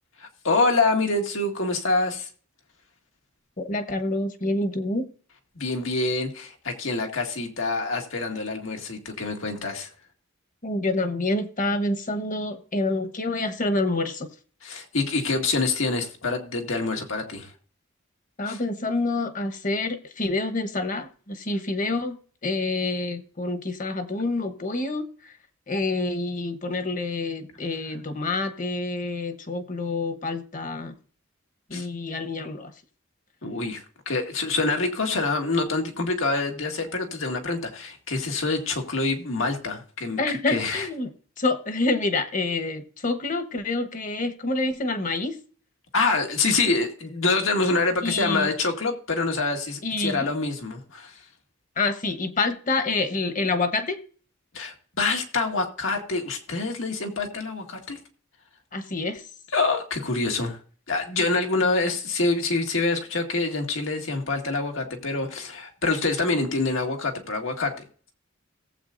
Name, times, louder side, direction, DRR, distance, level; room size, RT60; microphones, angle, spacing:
voice 1, 0.2-2.3 5.6-9.9 14.6-17.5 18.5-18.6 31.7-31.9 33.4-40.2 40.5-40.9 45.9-51.1 54.5-58.0 59.5-60.6 60.9-67.7, left 3 dB, 85° left, 2.0 m, -26 dB
voice 2, 3.6-5.1 10.6-14.3 18.4-25.3 25.7-30.9 31.7-32.7 40.2-41.1 41.4-45.4 48.0-48.5 49.8-50.3 51.8-54.0 58.7-59.2, left 2 dB, 40° left, 1.1 m, -27 dB
18.0 x 7.9 x 2.6 m
head